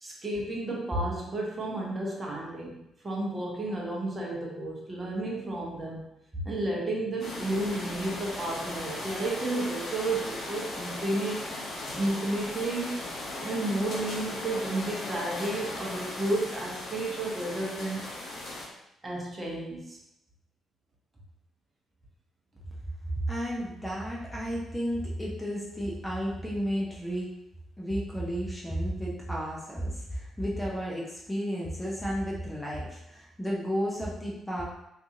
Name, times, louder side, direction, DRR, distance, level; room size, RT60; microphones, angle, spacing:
voice 1, 0.0-2.8 3.0-6.0 6.3-11.5 12.0-13.0 13.4-18.1 19.0-20.0, right 2 dB, 25° right, -3 dB, 0.8 m, -32 dB
sound 1, 7.2-18.7, left 2 dB, 50° left, 0.7 m, -37 dB
voice 2, 23.3-27.3 27.8-34.6, equal, 5° left, -4 dB, 0.6 m, -32 dB
2.6 x 2.5 x 2.5 m, 0.84 s
figure-of-eight pair, 40°, 0 cm